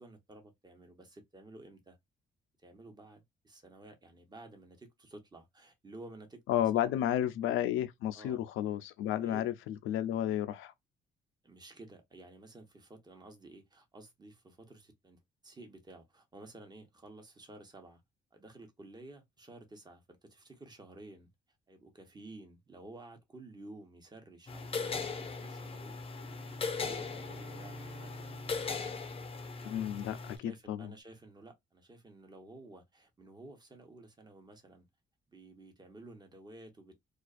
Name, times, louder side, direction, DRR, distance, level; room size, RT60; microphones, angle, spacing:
voice 1, 0.0-2.0 2.6-7.0 8.1-8.5 9.2-9.5 11.4-18.0 18.3-21.3 21.7-26.0 26.6-28.1 29.6-29.7 30.2-34.9 35.3-36.9, right 2 dB, 20° right, 0.9 m, -53 dB
voice 2, 6.5-10.7 29.6-30.9, left 11 dB, 90° left, 0.4 m, -32 dB
sound 1, 24.5-30.4, left 4 dB, 30° left, 0.5 m, -39 dB
Bowed string instrument, 26.1-30.3, right 4 dB, 40° right, 1.2 m, -56 dB
2.4 x 2.3 x 2.4 m
cardioid pair, 90°, 20 cm